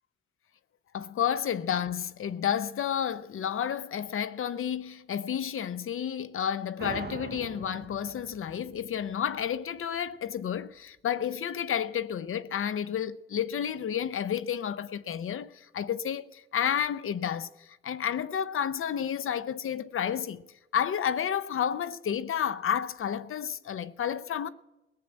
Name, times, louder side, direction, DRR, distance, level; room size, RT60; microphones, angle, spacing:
voice 1, 0.9-20.4 20.7-24.5, left 9 dB, 85° left, 0.6 m, -31 dB
sound 1, 6.8-10.1, right 7 dB, 50° right, 0.6 m, -43 dB
17.5 x 7.5 x 8.8 m
wide cardioid pair, 85°, 21 cm